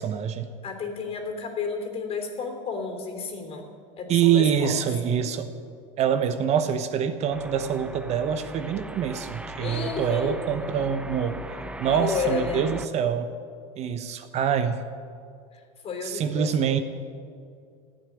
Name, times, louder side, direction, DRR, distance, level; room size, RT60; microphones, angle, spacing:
voice 1, 0.0-0.5 4.1-5.5 6.0-13.3 13.8-14.8 16.0-16.8, right 8 dB, 40° right, 9 dB, 1.0 m, -25 dB
voice 2, 0.6-3.7 4.0-4.8 9.6-10.4 11.9-12.7 15.5-16.8, left 4 dB, 35° left, 5 dB, 3.3 m, -32 dB
sound 1, 7.3-12.9, right 1 dB, 5° right, 0.8 m, -39 dB
15.5 x 9.1 x 9.9 m, 2.3 s
supercardioid pair, 120°, 17 cm